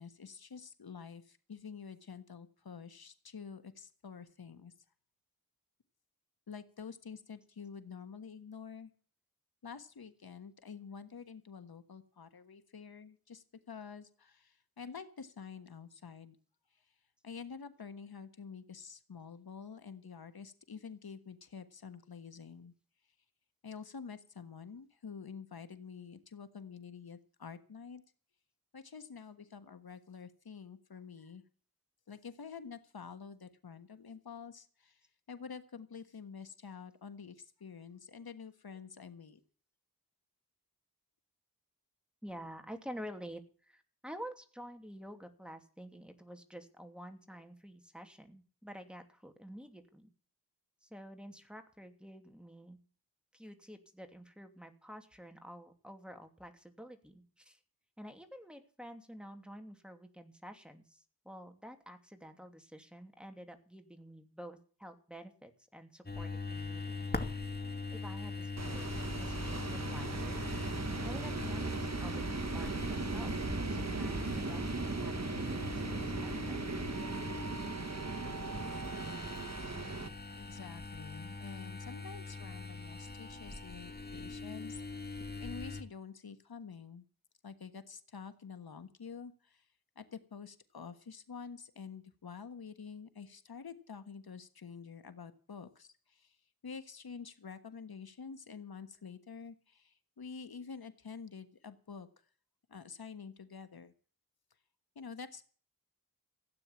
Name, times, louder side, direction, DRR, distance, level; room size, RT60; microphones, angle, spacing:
voice 1, 0.0-4.7 6.5-8.9 9.6-16.4 16.7-16.8 17.2-22.7 23.6-28.0 28.7-31.4 32.1-35.0 35.3-39.4 80.4-87.0 87.4-89.7 89.9-96.4 96.6-102.1 102.7-103.9 104.9-105.4, left 6 dB, 75° left, 10 dB, 1.5 m, -48 dB
voice 2, 42.2-50.1 50.8-52.8 53.3-57.6 58.0-67.1 67.9-70.4 71.0-73.3 73.7-76.7, equal, 5° right, 6 dB, 2.8 m, -49 dB
sound 1, 66.1-85.8, left 3 dB, 25° left, 2.3 m, -42 dB
sound 2, 68.6-80.1, right 4 dB, 45° right, 1.5 m, -38 dB
16.0 x 9.3 x 7.2 m, 0.42 s
wide cardioid pair, 55°, 37 cm